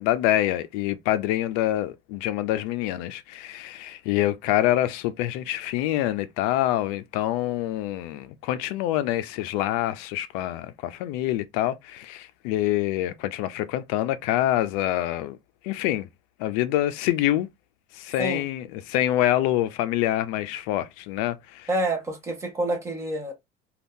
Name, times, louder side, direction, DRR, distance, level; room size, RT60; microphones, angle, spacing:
voice 1, 0.0-15.4 15.6-16.1 16.4-17.5 17.9-21.7, left 13 dB, 75° left, 0.4 m, -26 dB
voice 2, 21.7-23.3, right 1 dB, 15° right, 0.7 m, -28 dB
2.6 x 2.3 x 3.5 m
cardioid pair, 170°, 19 cm